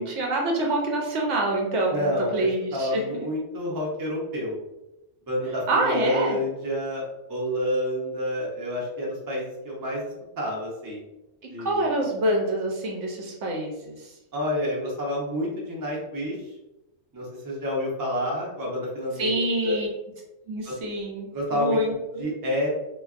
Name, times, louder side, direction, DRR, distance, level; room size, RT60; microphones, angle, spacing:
voice 1, 0.0-3.0 5.7-6.4 11.6-13.9 19.2-19.9 20.5-22.3, right 1 dB, 65° right, 0 dB, 0.8 m, -26 dB
voice 2, 1.9-4.6 5.3-10.0 10.4-11.0 11.5-11.9 14.3-16.4 17.1-19.3 19.6-19.8 20.7-20.8 21.3-21.8 22.2-22.7, left 1 dB, 30° right, -3 dB, 0.4 m, -29 dB
3.3 x 2.3 x 2.4 m, 0.97 s
omnidirectional pair, 1.5 m